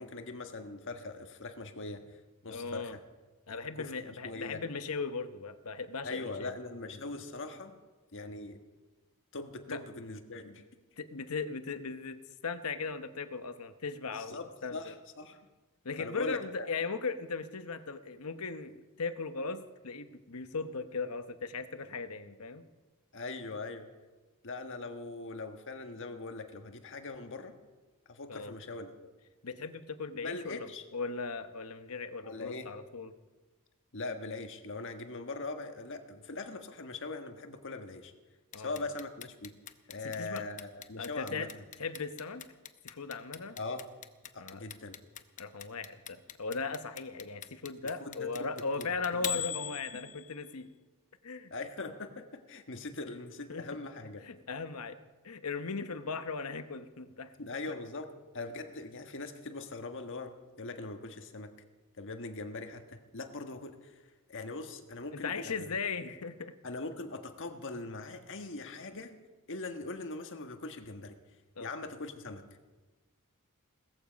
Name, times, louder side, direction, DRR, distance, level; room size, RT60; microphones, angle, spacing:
voice 1, 0.0-2.0 2.4-3.0 3.8-4.6 6.0-7.8 8.1-8.6 9.3-10.6 14.1-15.4 16.0-16.7 23.1-23.9 24.4-27.5 28.1-29.1 30.2-30.8 32.2-32.7 33.9-38.1 38.6-39.6 39.9-41.5 43.6-43.8 44.3-45.0 48.0-48.9 49.9-50.0 51.5-54.3 57.4-61.5 62.0-64.0 64.3-65.5 66.6-69.1 69.5-71.2 71.6-72.5, left 3 dB, 60° left, 6 dB, 1.5 m, -41 dB
voice 2, 2.5-3.0 3.5-6.6 9.7-9.8 11.0-14.9 15.8-22.7 28.3-28.5 29.4-33.1 38.5-38.8 40.0-40.5 41.0-41.5 41.8-42.5 42.8-43.6 44.4-44.6 45.4-50.7 51.2-51.5 53.5-53.7 54.2-57.3 65.1-66.5 71.6-71.7, left 4 dB, 75° left, 10 dB, 1.0 m, -38 dB
Clock, 38.5-50.5, left 9 dB, 35° left, 0.8 m, -41 dB
18.0 x 14.5 x 5.2 m, 1.3 s
head